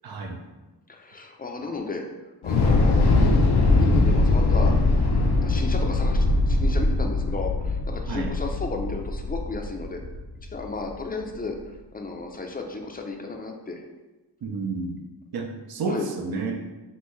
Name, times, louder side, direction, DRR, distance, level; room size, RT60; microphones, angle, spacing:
voice 1, 0.0-0.4 8.1-8.3 14.4-15.0 15.3-16.6, right 3 dB, 60° right, 3 dB, 0.6 m, -30 dB
voice 2, 0.9-2.1 2.4-3.2 3.7-4.8 5.4-10.0 10.5-11.6 11.9-13.8 15.9-16.1, left 3 dB, 20° left, 3 dB, 0.5 m, -33 dB
Thunder / Explosion, 2.4-10.6, left 2 dB, 70° left, 0.6 m, -21 dB
5.4 x 2.6 x 3.1 m, 1.1 s
wide cardioid pair, 110°, 42 cm